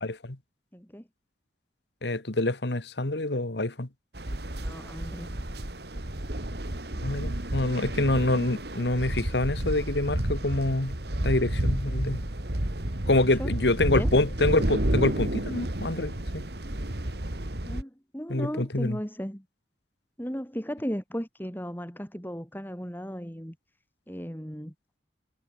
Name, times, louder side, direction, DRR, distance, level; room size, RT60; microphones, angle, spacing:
voice 1, 0.0-0.4 2.0-3.9 7.0-11.0 11.2-12.2 13.1-16.5 18.3-19.0, left 2 dB, 75° left, 1.8 m, -26 dB
voice 2, 0.7-1.1 4.6-5.4 13.0-13.5 13.8-14.1 17.6-19.4 20.2-23.6 24.1-24.7, equal, 10° left, 6.8 m, -36 dB
sound 1, 4.1-17.8, right 1 dB, 65° right, 2.5 m, -31 dB
head